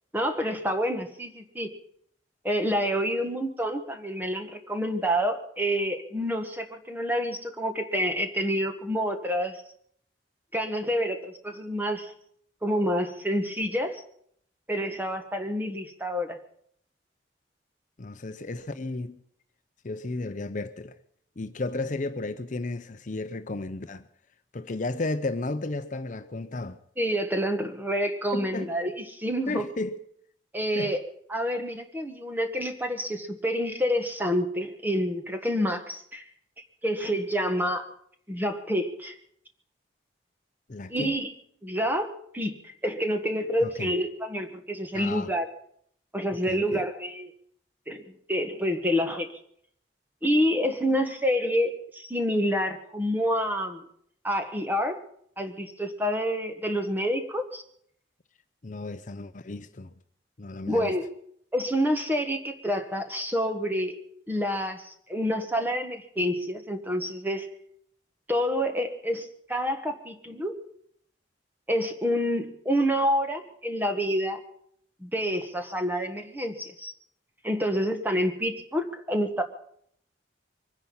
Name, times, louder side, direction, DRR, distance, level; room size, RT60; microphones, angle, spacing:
voice 1, 0.1-1.7 2.4-9.6 10.5-12.1 12.6-14.0 14.7-16.4 27.0-29.7 30.5-31.0 31.3-36.2 36.8-37.9 38.3-39.2 40.9-41.3 41.6-45.5 46.1-47.3 47.9-49.3 50.2-53.8 54.2-55.0 55.4-57.6 60.6-61.1 61.5-64.0 64.3-67.5 68.3-70.6 71.7-74.4 75.0-76.9 77.4-79.4, equal, 10° right, 1.5 m, -28 dB
voice 2, 18.0-19.2 19.8-21.0 21.4-24.0 24.5-26.8 28.3-28.7 29.5-30.0 30.8-30.9 40.7-41.1 43.6-43.9 44.9-45.3 46.5-46.8 58.6-59.9 60.4-61.0, left 2 dB, 45° left, 0.6 m, -33 dB
24.0 x 10.0 x 5.6 m
head